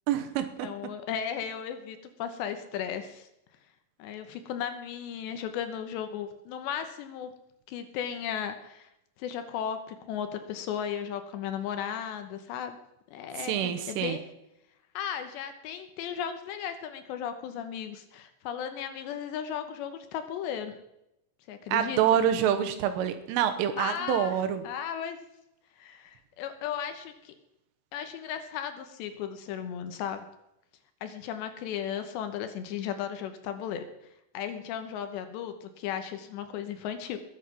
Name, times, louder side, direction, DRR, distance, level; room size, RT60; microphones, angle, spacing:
voice 1, 0.1-0.7 13.5-14.2 21.7-24.6, right 9 dB, 85° right, 8 dB, 3.7 m, -26 dB
voice 2, 0.6-3.3 4.0-7.3 7.7-8.9 9.2-12.8 13.1-14.2 14.9-20.8 21.5-22.2 23.8-24.3 24.6-25.2 25.8-27.3 27.9-30.3 31.0-33.8 34.3-37.2, left 9 dB, 75° left, 8 dB, 2.9 m, -35 dB
20.5 x 8.3 x 6.0 m, 0.85 s
omnidirectional pair, 5.6 m